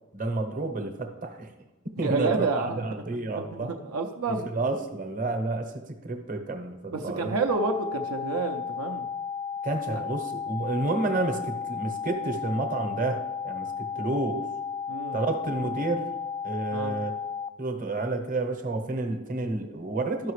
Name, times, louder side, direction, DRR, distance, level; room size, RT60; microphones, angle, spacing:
voice 1, 0.1-1.5 2.0-3.7 4.3-7.4 9.6-14.4 15.1-16.1 16.4-17.1 17.6-20.3, right 2 dB, 40° right, 5 dB, 0.9 m, -30 dB
voice 2, 2.0-3.0 3.3-4.5 6.9-9.0 9.9-10.0 14.9-15.2 16.7-16.9, right 3 dB, 70° right, 3 dB, 0.6 m, -29 dB
sound 1, 7.5-17.5, left 6 dB, 10° left, 0.3 m, -34 dB
12.0 x 5.7 x 3.2 m, 1.0 s
head